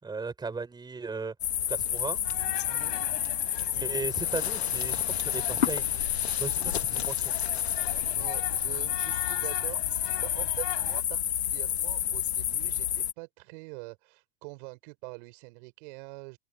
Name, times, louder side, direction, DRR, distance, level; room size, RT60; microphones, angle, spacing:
voice 1, 0.0-1.3 1.7-2.2 3.7-6.1 6.4-7.3, right 4 dB, 15° right, 5.2 m, -36 dB
sound 1, 1.4-13.1, left 10 dB, 80° left, 1.5 m, -29 dB
sound 2, 2.2-11.0, left 33 dB, 55° left, 3.9 m, -42 dB
voice 2, 2.7-3.0 8.1-16.4, right 29 dB, 55° right, 5.5 m, -44 dB
hypercardioid pair, 100°, 31 cm